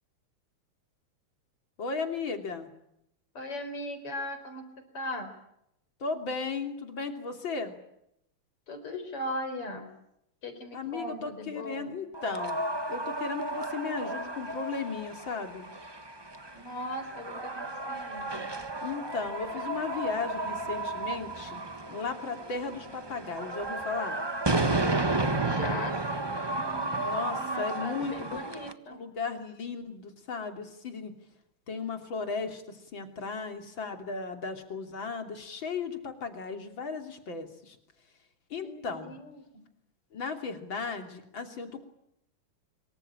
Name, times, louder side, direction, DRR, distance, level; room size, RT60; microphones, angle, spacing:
voice 1, 1.8-2.7 6.0-7.7 10.7-12.6 12.9-15.7 18.8-21.6 21.9-24.2 27.0-28.4 28.6-31.1 31.7-37.8 38.5-39.2 40.1-41.8, left 4 dB, 60° left, 6 dB, 3.7 m, -36 dB
voice 2, 3.4-4.7 4.9-5.3 8.7-9.9 10.4-12.0 16.5-18.4 25.4-27.1 27.4-29.0 38.6-39.4, left 1 dB, 85° left, 9 dB, 5.3 m, -38 dB
sound 1, 12.1-28.7, right 2 dB, 15° right, 0.9 m, -33 dB
25.5 x 24.0 x 8.7 m, 0.79 s
omnidirectional pair, 2.4 m